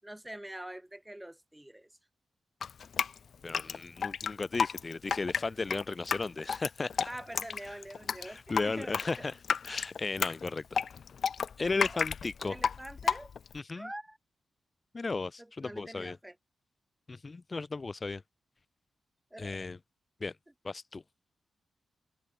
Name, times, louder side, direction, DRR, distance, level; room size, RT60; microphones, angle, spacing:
voice 1, 0.0-1.9 7.0-9.3 11.9-12.0 12.4-13.3 13.7-14.2 15.4-16.3 19.3-19.7, right 1 dB, 5° right, 6.7 m, -45 dB
Drip, 2.6-13.6, left 6 dB, 55° left, 3.1 m, -32 dB
voice 2, 3.4-7.1 7.7-7.8 8.2-9.4 9.6-10.8 11.6-12.6 13.5-13.9 14.9-16.2 17.1-18.2 19.4-19.8 20.2-20.3 20.6-21.0, left 3 dB, 30° left, 1.4 m, -35 dB
open air
wide cardioid pair, 135°, 0 cm